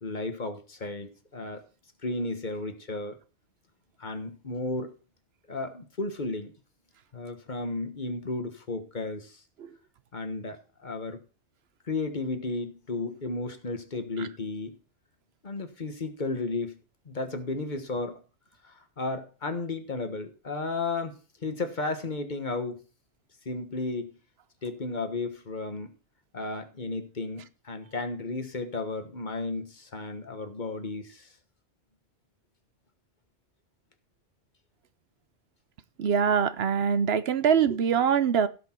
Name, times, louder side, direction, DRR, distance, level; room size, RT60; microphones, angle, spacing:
voice 1, 0.0-1.6 2.0-3.1 4.0-4.9 5.5-6.5 7.1-9.4 10.1-11.2 11.9-14.8 15.4-16.8 17.0-18.2 18.6-22.8 23.4-24.1 24.6-25.9 26.3-31.3, left 3 dB, 40° left, 1.4 m, -33 dB
voice 2, 36.0-38.5, right 7 dB, 65° right, 0.9 m, -24 dB
16.5 x 6.1 x 4.4 m
omnidirectional pair, 1.2 m